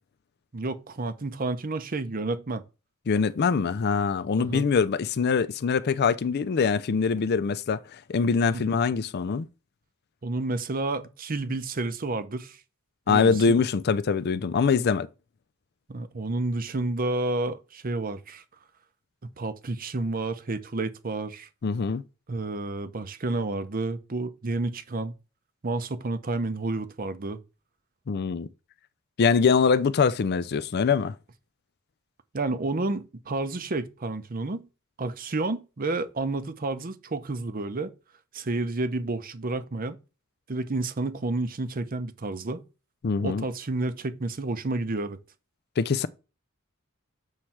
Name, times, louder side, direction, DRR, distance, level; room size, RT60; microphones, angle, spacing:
voice 1, 0.5-2.6 4.4-4.7 8.5-8.6 10.2-12.6 13.1-13.6 15.9-18.4 19.4-21.5 22.3-25.1 25.6-27.4 32.3-34.7 35.0-37.9 38.3-40.0 40.5-42.6 43.2-45.2, right 2 dB, 45° right, 0.7 m, -30 dB
voice 2, 3.1-7.8 8.1-9.5 13.1-15.1 21.6-22.0 28.1-28.5 29.2-31.1 43.0-43.4 45.8-46.1, left 5 dB, 50° left, 0.4 m, -23 dB
7.3 x 3.3 x 5.8 m
head